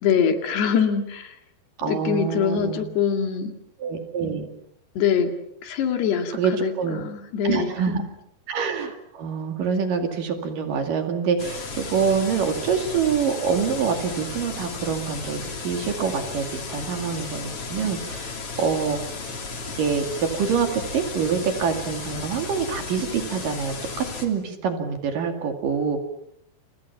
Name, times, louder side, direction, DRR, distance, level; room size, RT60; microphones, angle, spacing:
voice 1, 0.0-1.4 1.9-3.5 5.0-5.3 5.6-8.1, left 7 dB, 75° left, 6 dB, 4.3 m, -24 dB
voice 2, 1.8-2.9 3.8-4.5 6.4-7.0 7.4-8.0 8.5-19.0 19.8-26.0, right 6 dB, 55° right, 6 dB, 3.7 m, -26 dB
sound 1, 11.4-24.3, left 4 dB, 35° left, 3.6 m, -34 dB
29.5 x 29.5 x 5.8 m, 0.74 s
omnidirectional pair, 4.9 m